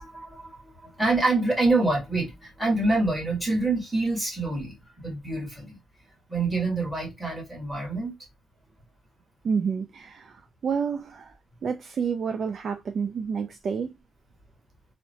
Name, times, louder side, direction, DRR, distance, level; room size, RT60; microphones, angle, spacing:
voice 1, 0.0-5.8 6.3-8.1, right 2 dB, ahead, 1.5 m, -26 dB
voice 2, 9.4-11.3 11.6-13.9, right 6 dB, 50° right, 0.3 m, -29 dB
2.7 x 2.1 x 2.7 m
cardioid pair, 90°, 0 cm